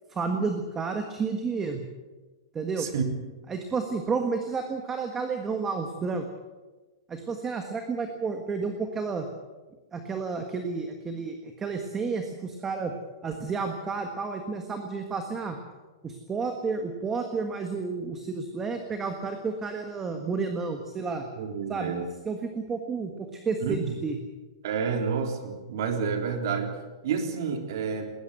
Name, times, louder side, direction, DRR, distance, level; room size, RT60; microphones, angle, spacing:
voice 1, 0.1-1.8 2.5-2.9 3.5-6.3 7.1-9.3 9.9-12.9 13.2-15.6 16.0-21.3 21.7-24.2, right 4 dB, 10° right, 5 dB, 1.5 m, -31 dB
voice 2, 21.4-22.1 23.6-23.9 24.6-26.7 27.0-28.1, right 6 dB, 55° right, 4 dB, 3.6 m, -29 dB
20.0 x 19.5 x 8.2 m, 1.2 s
supercardioid pair, 170°, 2 cm